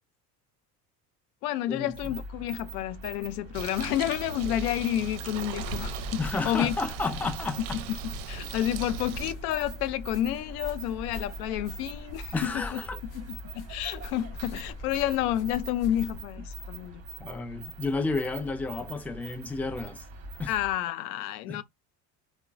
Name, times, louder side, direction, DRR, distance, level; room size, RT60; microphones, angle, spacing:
voice 1, 1.4-6.8 8.3-12.8 13.1-17.0 20.5-21.6, left 12 dB, 70° left, 0.5 m, -30 dB
sound 1, 1.9-20.8, right 2 dB, 30° right, 0.8 m, -43 dB
Bird, 3.5-9.3, right 7 dB, 60° right, 0.5 m, -39 dB
sound 2, 5.5-16.2, left 2 dB, 40° left, 0.9 m, -42 dB
voice 2, 6.2-7.8 12.3-13.0 17.2-20.1 20.4-20.5 21.5-21.6, left 3 dB, 5° left, 0.4 m, -32 dB
3.7 x 2.0 x 2.3 m
hypercardioid pair, 65°, 48 cm